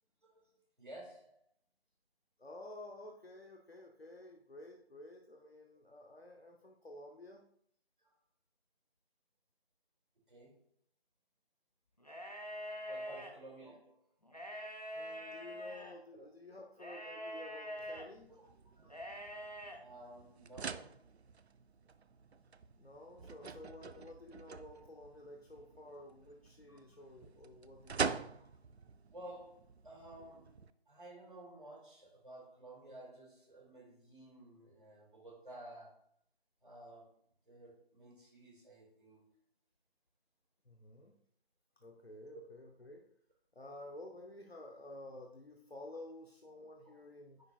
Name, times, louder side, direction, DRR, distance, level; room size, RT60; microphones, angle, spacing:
voice 1, 0.8-1.4 8.0-8.1 10.3-10.6 12.9-14.0 16.2-16.3 18.3-18.5 18.8-19.0 19.8-21.0 26.7-27.0 29.1-36.0 36.6-37.1 37.5-39.2 46.8-46.9, right 1 dB, 50° right, -1 dB, 2.3 m, -53 dB
voice 2, 2.4-7.4 13.1-13.2 14.2-14.7 14.9-18.3 22.8-28.3 40.7-41.1 41.8-43.0 43.5-47.4, left 1 dB, 70° left, 1 dB, 0.9 m, -52 dB
sound 1, 12.0-13.3 14.3-15.9 16.8-18.1 18.9-19.8, equal, 40° left, 0.7 m, -44 dB
sound 2, 17.8-30.7, right 5 dB, 85° right, 0.5 m, -45 dB
9.6 x 4.2 x 2.4 m, 0.64 s
figure-of-eight pair, 175°, 32 cm